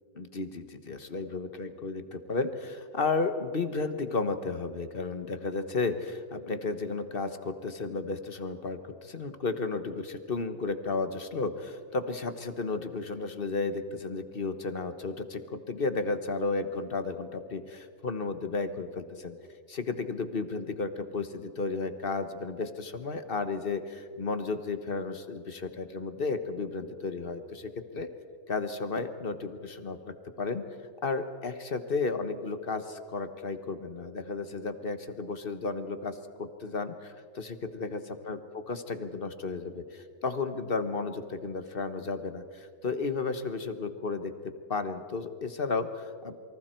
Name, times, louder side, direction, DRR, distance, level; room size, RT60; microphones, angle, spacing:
voice 1, 0.1-19.4 19.7-28.1 28.5-30.6 31.0-44.3 44.7-46.4, left 3 dB, 45° left, 9 dB, 1.4 m, -33 dB
28.0 x 24.5 x 4.5 m, 2.1 s
omnidirectional pair, 1.4 m